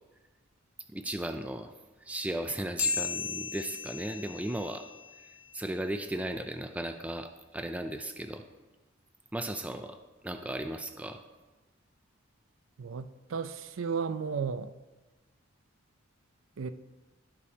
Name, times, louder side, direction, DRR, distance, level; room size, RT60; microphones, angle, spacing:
voice 1, 0.9-1.7 2.0-4.9 5.5-8.4 9.3-10.0 10.2-11.2, right 1 dB, 5° right, 7 dB, 0.3 m, -36 dB
sound 1, 2.8-5.6, left 6 dB, 85° left, 1.7 m, -35 dB
voice 2, 12.8-14.7 16.6-16.7, right 5 dB, 70° right, 12 dB, 0.5 m, -34 dB
15.0 x 5.2 x 2.8 m, 1.2 s
head